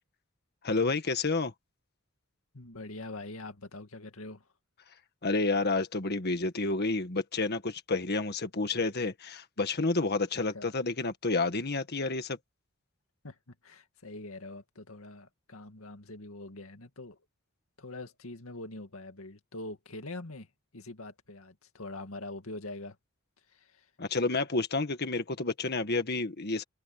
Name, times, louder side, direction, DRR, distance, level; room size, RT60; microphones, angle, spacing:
voice 1, 0.6-1.5 5.2-12.4 24.0-26.6, left 3 dB, 50° left, 1.7 m, -30 dB
voice 2, 2.5-4.5 10.5-10.7 13.2-17.2 17.8-23.0 23.5-23.9, left 2 dB, 85° left, 2.2 m, -44 dB
head